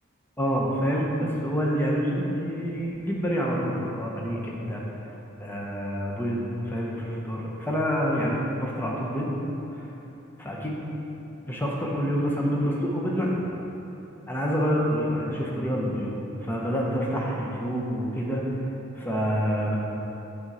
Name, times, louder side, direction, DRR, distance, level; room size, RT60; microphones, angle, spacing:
voice 1, 0.4-4.8 5.4-9.3 9.7-9.9 10.4-10.8 11.4-13.4 14.3-16.1 16.4-18.4 19.0-19.8, equal, 10° left, -3 dB, 0.8 m, -27 dB
7.7 x 3.8 x 4.2 m, 2.9 s
head